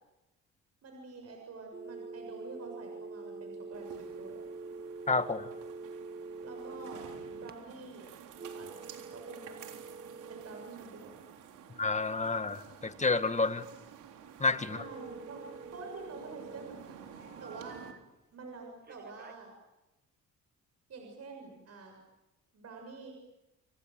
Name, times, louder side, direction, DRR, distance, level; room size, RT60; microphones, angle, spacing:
voice 1, 0.8-4.4 6.4-8.2 8.5-9.6 10.3-11.3 14.7-17.9 18.3-19.5 20.9-22.0 22.5-23.1, right 3 dB, 55° right, 3 dB, 7.0 m, -47 dB
sound 1, 1.7-7.5 8.3-10.7 14.7-16.7 17.1-18.0 18.9-19.3, right 4 dB, 30° right, 1.9 m, -45 dB
sound 2, 3.7-17.9, right 8 dB, 90° right, 3.8 m, -52 dB
voice 2, 5.1-5.5 11.8-13.7 14.4-14.8, left 3 dB, 25° left, 10 dB, 1.9 m, -29 dB
29.0 x 25.0 x 7.7 m, 0.99 s
cardioid pair, 90°, 30 cm